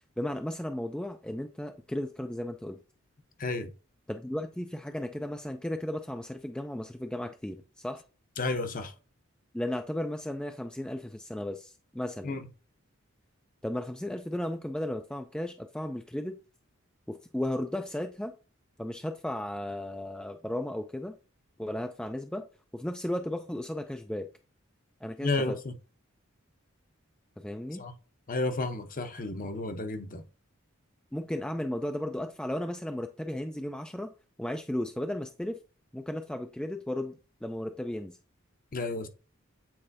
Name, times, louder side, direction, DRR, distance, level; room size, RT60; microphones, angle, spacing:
voice 1, 0.2-2.8 4.1-8.0 9.5-12.3 13.6-16.4 17.1-18.3 18.8-21.1 21.6-22.4 22.7-24.3 25.0-25.6 27.4-27.8 31.1-34.1 34.4-35.6 35.9-38.2, left 1 dB, 5° left, 0.3 m, -35 dB
voice 2, 8.4-8.9 12.2-12.5 25.2-25.7 27.8-27.9 28.3-30.2 38.7-39.1, left 3 dB, 40° left, 0.8 m, -32 dB
8.7 x 4.3 x 2.6 m
head